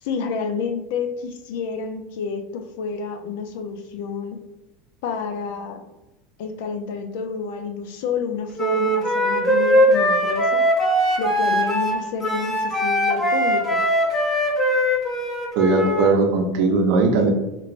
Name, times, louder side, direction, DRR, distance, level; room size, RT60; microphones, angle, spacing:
voice 1, 0.0-4.4 5.0-5.8 6.4-10.7 11.2-13.8, left 5 dB, 70° left, 7 dB, 0.4 m, -29 dB
Wind instrument woodwind instrument, 8.6-16.1, equal, 15° left, 0.6 m, -20 dB
voice 2, 15.6-17.3, right 3 dB, 65° right, 3 dB, 0.6 m, -18 dB
2.9 x 2.9 x 2.5 m, 0.98 s
supercardioid pair, 145°, 0 cm